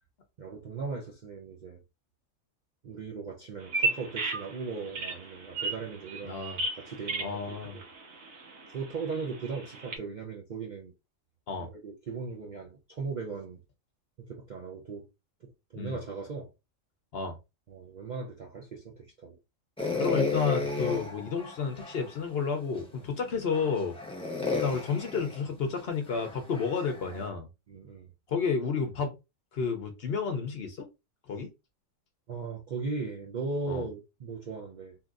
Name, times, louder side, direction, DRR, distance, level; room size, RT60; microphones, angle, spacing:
voice 1, 0.4-1.8 2.8-6.4 6.7-7.9 8.7-10.9 11.6-13.6 14.3-15.1 15.4-16.5 17.7-19.4 27.7-28.1 32.3-35.0, right 4 dB, 55° right, 0.5 m, -38 dB
Bird vocalization bird call bird song, 3.6-10.0, right 3 dB, 80° right, 1.4 m, -35 dB
voice 2, 6.2-6.6 7.2-7.7 11.5-11.7 15.7-16.0 17.1-17.3 20.0-23.9 24.6-27.5 28.3-29.1 29.5-30.9 31.3-31.5 33.7-33.8, left 5 dB, 60° left, 0.7 m, -31 dB
sound 1, 19.8-22.1 22.8-22.9 23.5-27.3, left 4 dB, 5° left, 0.6 m, -33 dB
3.6 x 2.8 x 2.4 m
omnidirectional pair, 1.4 m